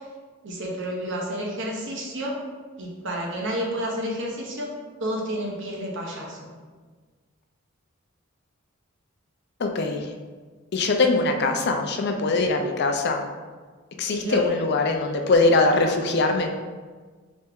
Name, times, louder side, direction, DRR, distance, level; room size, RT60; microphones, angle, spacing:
voice 1, 0.4-2.4 2.8-4.7 5.0-6.5 14.1-14.6, equal, 60° right, -2 dB, 0.9 m, -30 dB
voice 2, 9.6-10.1 10.7-13.3 14.0-16.5, left 3 dB, 55° left, 4 dB, 0.4 m, -22 dB
4.2 x 3.4 x 3.5 m, 1.4 s
head